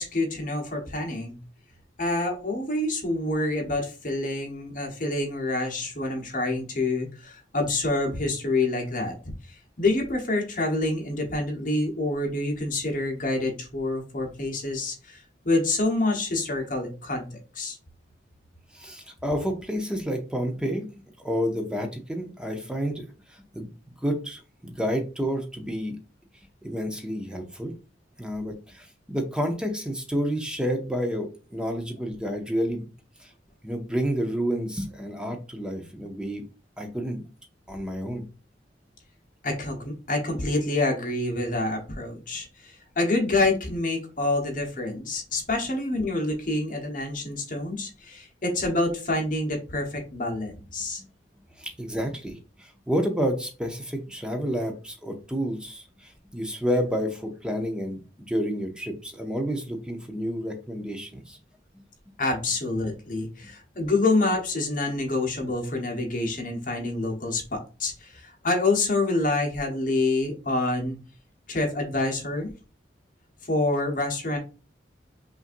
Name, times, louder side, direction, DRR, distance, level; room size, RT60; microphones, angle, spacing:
voice 1, 0.0-1.4 2.0-9.2 9.5-17.8 39.4-51.0 62.2-71.0 71.5-72.5 73.4-74.4, left 2 dB, 45° left, 1 dB, 1.1 m, -27 dB
voice 2, 18.7-20.9 21.2-23.7 24.0-26.0 26.6-27.7 28.2-32.8 33.2-33.3 33.6-36.4 36.8-37.2 37.7-38.2 51.6-58.0 58.3-61.4, equal, 5° right, 4 dB, 0.7 m, -30 dB
5.6 x 2.6 x 2.5 m, 0.33 s
head